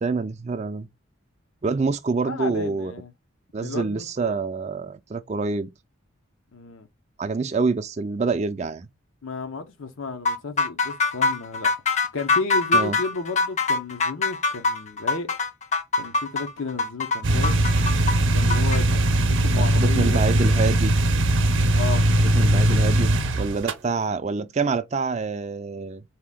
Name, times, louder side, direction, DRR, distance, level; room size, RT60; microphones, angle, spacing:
voice 1, 0.0-0.9 1.6-2.9 3.5-5.7 7.2-8.9 12.7-13.0 19.5-20.9 22.2-26.0, right 4 dB, 30° right, 0.3 m, -26 dB
voice 2, 2.2-3.1 3.5-4.4 6.5-6.9 9.2-11.7 12.1-15.3 16.0-17.6 18.3-20.7 21.7-22.1, left 3 dB, 70° left, 0.7 m, -33 dB
sound 1, 10.2-18.8, left 3 dB, 35° left, 0.6 m, -24 dB
sound 2, 17.2-23.7, right 1 dB, 60° right, 0.7 m, -20 dB
4.1 x 2.8 x 3.6 m
head